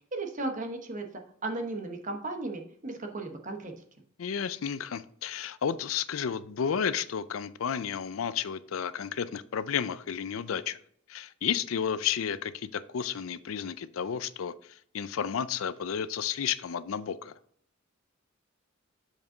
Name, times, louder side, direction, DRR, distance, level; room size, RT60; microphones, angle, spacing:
voice 1, 0.1-1.1 1.4-3.7, right 2 dB, 40° right, 1.1 m, -35 dB
voice 2, 4.2-10.8 11.1-14.5 14.9-17.3, left 7 dB, 80° left, 0.4 m, -32 dB
7.2 x 5.1 x 3.9 m
head